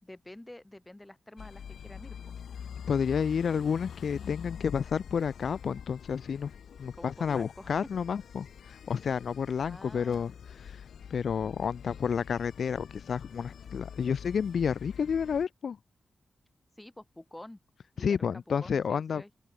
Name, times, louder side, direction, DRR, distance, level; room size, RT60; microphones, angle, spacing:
voice 1, 0.0-2.3 6.9-7.9 9.6-10.3 16.8-17.6 18.0-19.3, left 1 dB, 10° left, 3.1 m, -48 dB
sound 1, 1.4-15.5, left 8 dB, 85° left, 4.1 m, -45 dB
voice 2, 2.9-6.5 6.8-10.3 10.6-10.8 11.1-15.8 18.0-19.2, left 7 dB, 65° left, 0.6 m, -30 dB
open air
wide cardioid pair, 130°, 0 cm